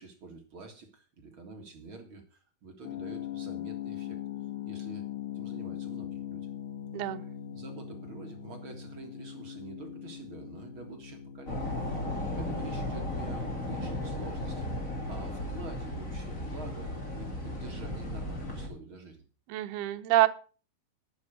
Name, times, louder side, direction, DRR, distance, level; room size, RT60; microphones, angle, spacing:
voice 1, 0.0-4.2 4.6-5.1 5.3-6.5 7.5-11.7 12.1-19.2, right 3 dB, 40° right, 4 dB, 2.1 m, -47 dB
sound 1, 2.8-17.6, left 11 dB, 75° left, 3.3 m, -42 dB
sound 2, 11.5-18.7, left 1 dB, 20° left, 2.7 m, -35 dB
voice 2, 19.5-20.3, right 14 dB, 80° right, 11 dB, 2.8 m, -26 dB
11.5 x 8.2 x 6.5 m, 0.37 s
omnidirectional pair, 4.6 m